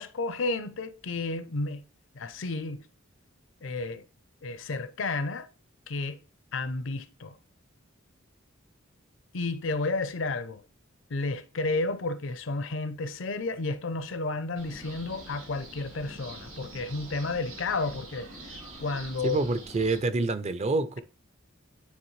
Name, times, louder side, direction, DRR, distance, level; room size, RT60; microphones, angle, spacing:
voice 1, 0.0-1.8 2.1-2.9 3.6-4.0 4.4-5.5 5.9-6.2 6.5-7.4 9.3-10.6 11.1-18.3 18.8-19.4, left 3 dB, 65° left, 0.6 m, -31 dB
sound 1, 14.6-20.0, right 1 dB, 90° right, 2.9 m, -45 dB
voice 2, 19.2-21.0, right 3 dB, 35° right, 0.5 m, -27 dB
9.4 x 3.4 x 3.2 m
head